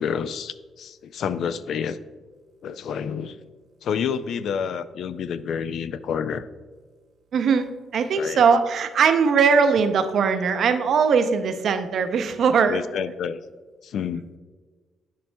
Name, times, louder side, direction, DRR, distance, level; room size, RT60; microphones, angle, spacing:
voice 1, 0.0-2.0 2.6-3.4 3.8-6.5 8.2-8.4 12.7-13.4 13.8-14.2, left 7 dB, 70° left, 14 dB, 0.3 m, -29 dB
voice 2, 7.3-13.1, right 5 dB, 60° right, 9 dB, 0.5 m, -20 dB
10.5 x 5.4 x 2.2 m, 1.4 s
cardioid pair, 90°, 0 cm